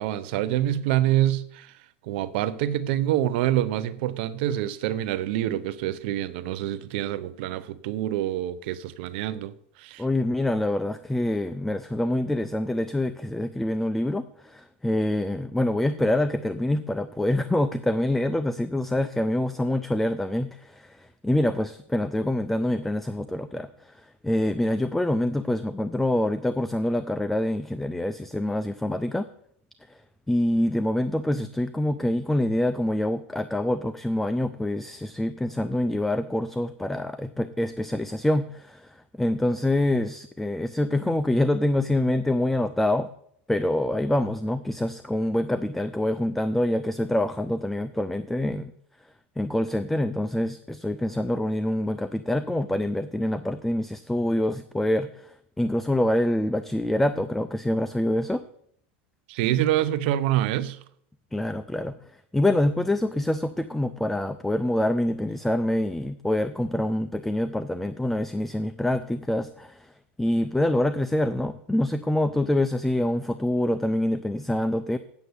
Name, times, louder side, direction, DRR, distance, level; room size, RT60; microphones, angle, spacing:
voice 1, 0.0-1.7 2.1-9.5 9.8-10.0 59.3-60.8, right 13 dB, 60° right, 0.7 m, -26 dB
voice 2, 10.0-29.3 30.3-43.1 43.5-48.7 49.4-58.4 61.3-62.0 62.3-69.9 70.2-75.0, left 1 dB, 5° left, 0.4 m, -26 dB
8.3 x 6.5 x 8.0 m
supercardioid pair, 140°, 6 cm